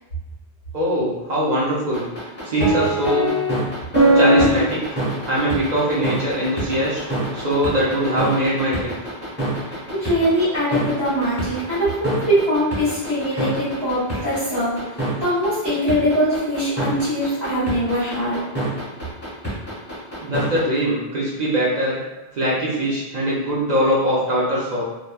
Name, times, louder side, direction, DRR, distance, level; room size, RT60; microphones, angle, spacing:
voice 1, 0.7-2.1 2.4-3.3 4.1-5.0 5.3-7.0 7.3-8.9 20.2-22.0 22.3-24.8, equal, 50° right, -6 dB, 0.7 m, -22 dB
sound 1, 1.9-20.6, right 1 dB, 10° left, 0.8 m, -23 dB
voice 2, 9.9-14.7 15.2-18.4, equal, 70° right, -12 dB, 1.4 m, -22 dB
2.9 x 2.1 x 2.2 m, 1.1 s
omnidirectional pair, 1.1 m